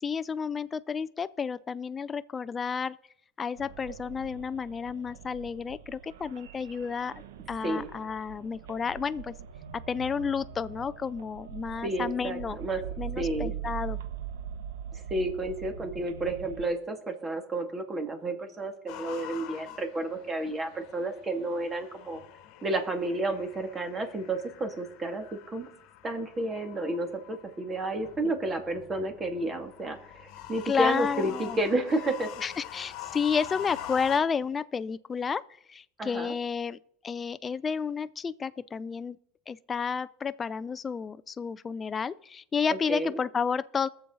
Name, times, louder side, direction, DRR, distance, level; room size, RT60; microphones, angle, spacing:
voice 1, 0.0-3.0 3.4-7.1 7.5-9.3 9.9-12.6 13.0-14.0 30.7-31.6 32.4-35.4 35.7-36.8 37.0-39.2 39.5-43.9, left 6 dB, 25° left, 0.3 m, -31 dB
sound 1, 3.6-16.6, right 9 dB, 85° right, 0.9 m, -42 dB
voice 2, 11.8-12.8 13.2-13.5 14.9-22.2 22.6-25.7 26.0-32.3 36.0-36.3 42.7-43.2, right 2 dB, 25° right, 2.3 m, -31 dB
sound 2, 18.9-34.2, left 12 dB, 65° left, 1.2 m, -45 dB
21.0 x 7.0 x 3.9 m
supercardioid pair, 105°, 0 cm